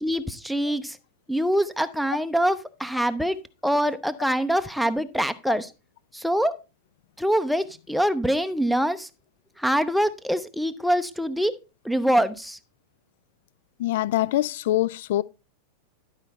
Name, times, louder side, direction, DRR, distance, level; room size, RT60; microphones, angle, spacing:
voice 1, 0.0-1.0 1.3-3.4 3.6-5.7 6.1-6.5 7.2-9.1 9.6-11.5 11.8-12.6, equal, ahead, 0.6 m, -24 dB
voice 2, 13.8-15.2, left 14 dB, 55° left, 0.3 m, -24 dB
11.5 x 4.8 x 4.1 m
figure-of-eight pair, 90°, 0 cm